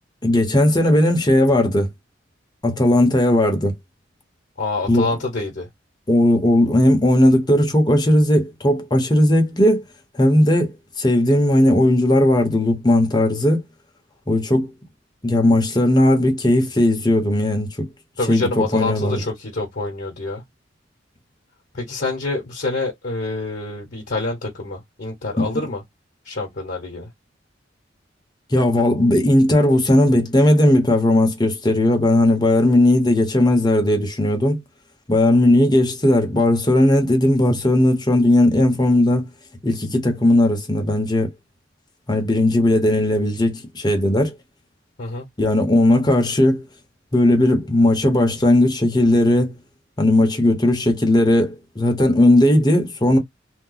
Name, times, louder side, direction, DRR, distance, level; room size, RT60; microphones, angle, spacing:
voice 1, 0.2-1.9 2.6-3.8 4.9-5.1 6.1-9.8 10.2-13.6 14.3-14.7 15.2-17.9 18.3-19.2 25.4-25.6 28.5-34.6 35.1-39.3 39.6-41.3 42.1-44.3 45.4-46.6 47.1-49.5 50.0-53.2, left 1 dB, 25° left, 1.0 m, -17 dB
voice 2, 4.6-5.7 18.2-20.4 21.7-25.8 26.2-27.1 45.0-45.3, left 2 dB, 50° left, 1.0 m, -26 dB
2.9 x 2.2 x 3.8 m
head